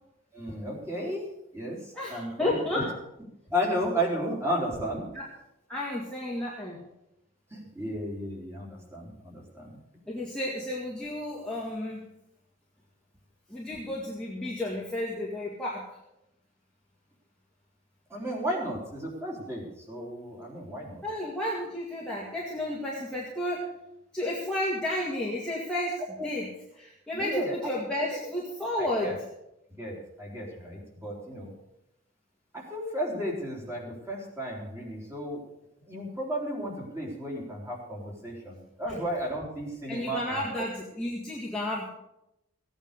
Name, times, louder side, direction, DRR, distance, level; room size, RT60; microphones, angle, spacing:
voice 1, 0.3-1.2 1.5-2.9 3.5-5.1 7.5-9.8 18.1-21.0 26.2-26.3 27.1-27.7 28.1-28.2 28.8-29.2 29.8-31.5 32.5-35.4 35.9-40.6, equal, 15° right, -2 dB, 3.5 m, -33 dB
voice 2, 1.9-2.9 5.1-5.2 5.7-6.8 10.1-12.0 13.5-15.9 21.0-23.7 24.1-26.5 26.8-29.1 39.9-41.8, left 1 dB, 5° left, -6 dB, 2.1 m, -32 dB
16.0 x 9.0 x 6.6 m, 0.86 s
head